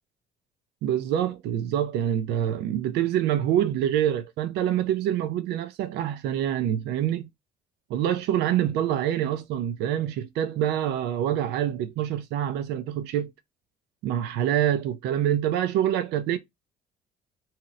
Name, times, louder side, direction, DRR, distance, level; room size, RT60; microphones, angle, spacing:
voice 1, 0.8-7.3 7.9-13.3 14.0-16.4, right 11 dB, 85° right, 0.4 m, -26 dB
2.8 x 2.0 x 3.6 m
cardioid pair, 110°, 17 cm